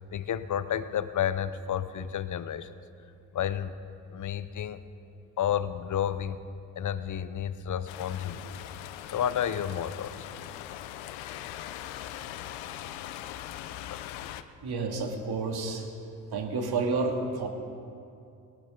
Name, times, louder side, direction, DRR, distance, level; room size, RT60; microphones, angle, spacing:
voice 1, 0.1-2.7 3.3-3.7 4.1-4.8 5.4-6.4 6.8-8.5 9.1-10.3, left 9 dB, 40° left, 14 dB, 0.9 m, -31 dB
sound 1, 7.9-14.4, left 12 dB, 65° left, 0.8 m, -41 dB
voice 2, 14.6-15.9 16.3-17.5, right 3 dB, 50° right, 3 dB, 2.5 m, -30 dB
18.5 x 17.0 x 3.9 m, 2.6 s
hypercardioid pair, 50°, 49 cm